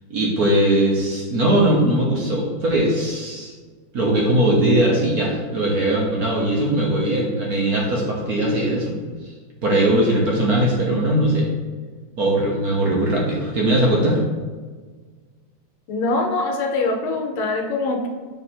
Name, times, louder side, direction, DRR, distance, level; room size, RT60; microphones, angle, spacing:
voice 1, 0.1-3.5 3.9-9.0 9.6-11.5 12.2-14.2, right 1 dB, 55° right, -3 dB, 1.2 m, -20 dB
voice 2, 15.9-18.1, left 2 dB, 75° left, 2 dB, 1.5 m, -23 dB
6.8 x 3.4 x 4.3 m, 1.4 s
omnidirectional pair, 2.4 m